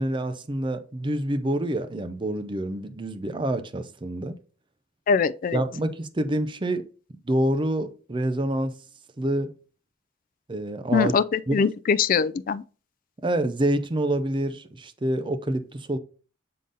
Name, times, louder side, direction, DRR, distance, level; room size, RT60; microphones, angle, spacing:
voice 1, 0.0-4.4 5.5-6.9 7.2-8.8 9.2-9.6 10.5-11.2 11.5-11.6 13.2-16.0, right 1 dB, 25° right, 0.6 m, -27 dB
voice 2, 5.1-5.6 10.9-12.6, left 6 dB, 45° left, 0.3 m, -22 dB
6.8 x 3.8 x 3.9 m
head